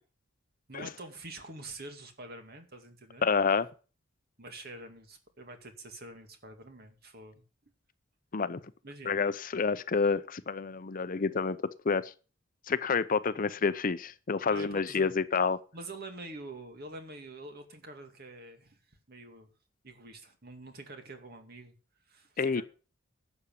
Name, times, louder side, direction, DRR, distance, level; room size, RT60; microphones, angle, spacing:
voice 1, 0.7-3.3 4.4-7.4 8.8-9.1 14.5-15.2 15.7-19.5 19.8-21.7 22.1-22.6, right 2 dB, 50° right, 2.3 m, -46 dB
voice 2, 3.2-3.7 8.3-8.6 9.0-11.6 11.8-12.1 12.7-15.6 22.4-22.6, left 5 dB, 45° left, 0.6 m, -28 dB
11.5 x 7.2 x 7.0 m
head